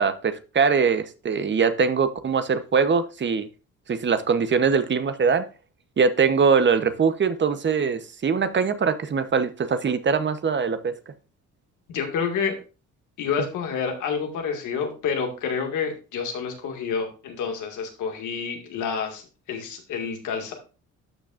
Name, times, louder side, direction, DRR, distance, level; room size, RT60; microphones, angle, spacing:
voice 1, 0.0-3.5 3.9-5.5 6.0-10.9, right 5 dB, 40° right, 0.9 m, -22 dB
voice 2, 11.9-12.5 13.2-19.2 19.5-20.5, left 6 dB, 85° left, 2.0 m, -28 dB
12.0 x 6.0 x 2.5 m
cardioid pair, 90°, 30 cm